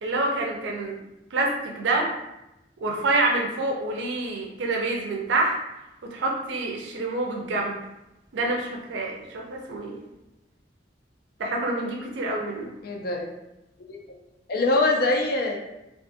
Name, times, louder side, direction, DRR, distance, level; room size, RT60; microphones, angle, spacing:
voice 1, 0.0-1.0 1.3-2.1 2.8-5.5 6.0-7.8 8.3-9.9 11.4-12.7, right 2 dB, 90° right, 0 dB, 0.4 m, -27 dB
voice 2, 12.8-13.3 13.8-14.0 14.5-15.6, left 2 dB, 60° left, 1 dB, 0.4 m, -23 dB
2.4 x 2.4 x 2.5 m, 0.93 s
head